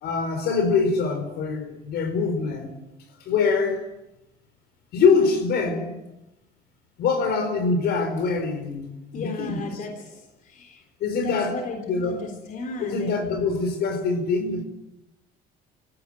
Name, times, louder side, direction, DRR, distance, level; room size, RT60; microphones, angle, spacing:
voice 1, 0.0-2.7 3.2-3.8 4.9-5.9 7.0-9.8 11.0-11.6 11.8-12.2 12.8-14.6, left 4 dB, 70° left, 5.0 m, -24 dB
voice 2, 9.1-10.8 11.2-13.1, left 3 dB, 50° left, 3.6 m, -35 dB
24.5 x 16.0 x 9.3 m
cardioid pair, 110°, 17 cm